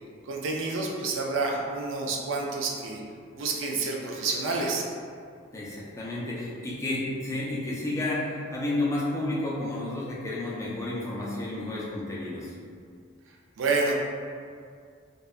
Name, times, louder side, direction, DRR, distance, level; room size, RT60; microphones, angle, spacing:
voice 1, 0.2-3.0 3.4-4.9 13.6-13.9, right 3 dB, 70° right, -1 dB, 0.4 m, -28 dB
voice 2, 5.5-12.5, left 2 dB, 15° left, -6 dB, 0.4 m, -31 dB
2.7 x 2.2 x 2.3 m, 2.2 s
head